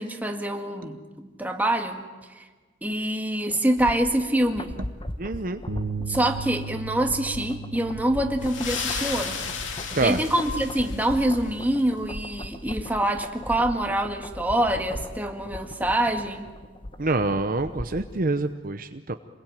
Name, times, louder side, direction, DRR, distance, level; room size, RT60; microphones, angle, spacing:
voice 1, 0.0-2.1 2.4-2.5 2.8-4.7 6.1-9.5 10.0-16.5, right 1 dB, 10° right, 3 dB, 1.9 m, -25 dB
sound 1, 3.5-18.2 18.5-18.6, left 1 dB, 25° left, 1.1 m, -39 dB
voice 2, 5.2-5.6 9.9-10.2 17.0-19.1, right 2 dB, 45° right, 8 dB, 0.8 m, -26 dB
sound 2, 5.7-11.9, right 4 dB, 75° right, 1.6 m, -38 dB
sound 3, 8.4-11.4, left 6 dB, 75° left, 2.6 m, -33 dB
27.5 x 21.5 x 9.3 m, 1.4 s
head